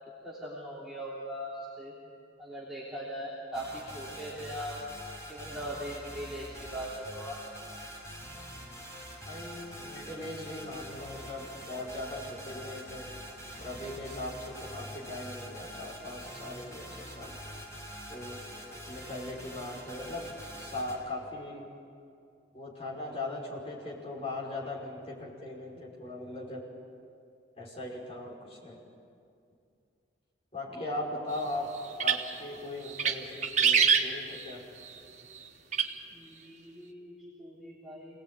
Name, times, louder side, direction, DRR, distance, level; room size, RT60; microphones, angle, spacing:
voice 1, 0.2-1.9 2.4-4.8 5.3-7.4 25.8-25.9 30.7-30.8 36.1-38.2, equal, ahead, -8 dB, 3.3 m, -40 dB
sound 1, 3.5-21.0, equal, 15° left, 5.3 m, -45 dB
voice 2, 9.3-13.1 13.6-17.3 18.1-18.4 18.7-20.3 20.6-21.7 22.5-26.6 27.6-28.8 30.5-31.7 32.0-34.7, left 2 dB, 35° left, -4 dB, 5.4 m, -39 dB
sound 2, 31.8-32.4 32.9-33.2 33.4-34.5 35.7-35.9, right 6 dB, 40° right, 1.3 m, -24 dB
27.0 x 19.0 x 9.0 m, 2.5 s
head